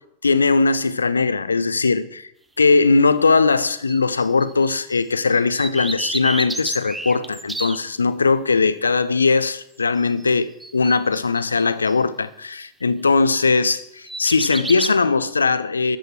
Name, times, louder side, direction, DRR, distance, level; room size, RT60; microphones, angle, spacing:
voice 1, 0.2-2.3 2.6-16.0, left 4 dB, 75° left, 0.6 m, -19 dB
sound 1, 3.7-5.0 5.3-7.8 10.0-10.3 10.6-11.9 13.4-13.7 14.1-14.9, right 2 dB, 5° right, 0.6 m, -31 dB
13.0 x 7.9 x 4.4 m
figure-of-eight pair, 90°, 0 cm